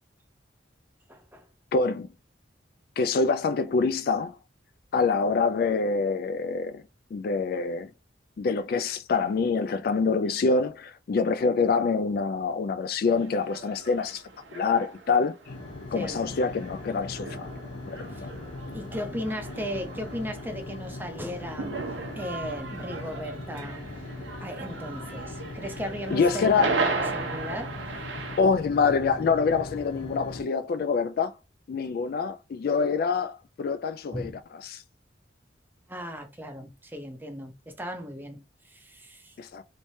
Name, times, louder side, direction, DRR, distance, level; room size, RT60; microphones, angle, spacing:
voice 1, 1.1-1.5 15.9-16.2 18.1-18.3 18.7-21.7 22.2-23.8 24.4-27.7 34.1-34.3 35.9-38.4 38.6-39.3, equal, 10° right, 0.6 m, -36 dB
voice 2, 1.7-2.1 3.0-4.4 4.9-6.8 7.1-7.9 8.4-14.2 14.5-15.3 15.9-17.5 17.9-18.3 26.1-26.7 28.4-31.3 31.7-34.8 39.4-39.6, left 4 dB, 50° left, 0.3 m, -26 dB
sound 1, 13.1-28.4, right 3 dB, 85° right, 0.9 m, -36 dB
sound 2, 15.4-30.4, left 2 dB, 80° left, 1.3 m, -40 dB
3.2 x 3.2 x 2.7 m
head